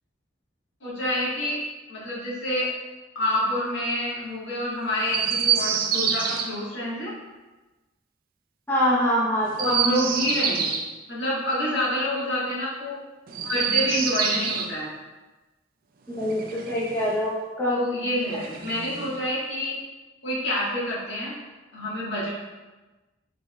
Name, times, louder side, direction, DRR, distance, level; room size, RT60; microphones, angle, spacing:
voice 1, 0.8-1.6 1.9-2.7 3.1-7.1 9.6-10.7 11.1-13.0 13.4-14.9 17.7-19.7 20.2-21.3 21.7-22.3, left 1 dB, 70° left, -6 dB, 1.3 m, -27 dB
Chirp tweet, 5.1-6.5 9.5-10.9 13.3-14.7 16.1-17.2 18.3-19.2, right 7 dB, 50° right, 0.4 m, -27 dB
voice 2, 8.7-9.7 16.1-17.8, equal, 10° left, -7 dB, 0.7 m, -24 dB
5.1 x 3.3 x 2.3 m, 1.2 s
head